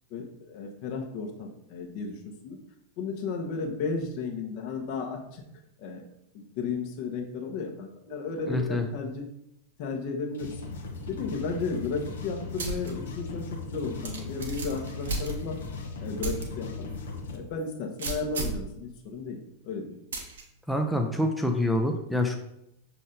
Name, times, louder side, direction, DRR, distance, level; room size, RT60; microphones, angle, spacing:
voice 1, 0.1-2.6 3.0-5.4 5.8-6.1 6.3-9.2 9.8-10.5 11.1-15.6 16.0-16.9 17.3-19.4 19.6-19.9, left 4 dB, 45° left, 3 dB, 1.2 m, -34 dB
voice 2, 8.5-8.9 20.7-22.4, left 1 dB, ahead, 3 dB, 0.6 m, -26 dB
sound 1, 10.3-17.4, left 4 dB, 65° left, 1.0 m, -38 dB
sound 2, 12.6-12.9 13.3-13.4 14.0-15.7 16.2-16.4 16.9-17.0 18.0-18.7 20.1-20.4, right 3 dB, 65° right, 1.1 m, -33 dB
6.4 x 4.1 x 3.9 m, 0.80 s
figure-of-eight pair, 90°, 0 cm